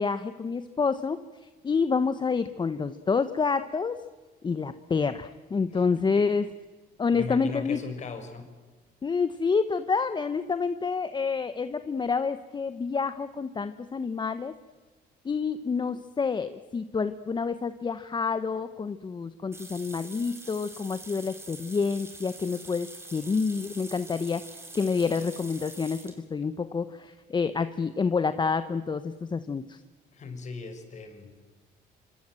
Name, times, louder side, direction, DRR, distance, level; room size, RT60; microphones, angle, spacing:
voice 1, 0.0-4.0 4.4-6.5 7.0-7.8 9.0-14.5 15.2-24.4 24.7-29.8, left 5 dB, 25° left, 11 dB, 1.0 m, -28 dB
voice 2, 7.1-8.4 30.1-31.3, left 4 dB, 45° left, 7 dB, 5.7 m, -38 dB
sound 1, 19.5-26.2, right 2 dB, 15° right, 4.5 m, -45 dB
26.0 x 26.0 x 7.7 m, 1.3 s
cardioid pair, 110°, 17 cm